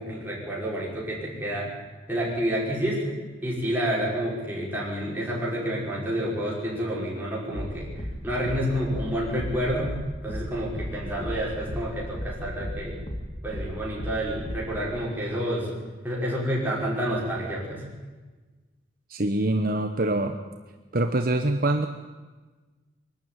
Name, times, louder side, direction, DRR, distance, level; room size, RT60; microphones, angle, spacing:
voice 1, 0.0-1.7 2.1-3.2 3.4-7.9 8.2-10.0 10.2-13.0 13.4-15.7 16.0-17.8, equal, 10° right, -5 dB, 5.8 m, -29 dB
sound 1, 7.5-14.9, equal, 30° left, 2.2 m, -36 dB
voice 2, 19.1-20.4 20.9-21.9, right 2 dB, 50° right, 5 dB, 1.0 m, -24 dB
23.0 x 12.5 x 9.2 m, 1.3 s
head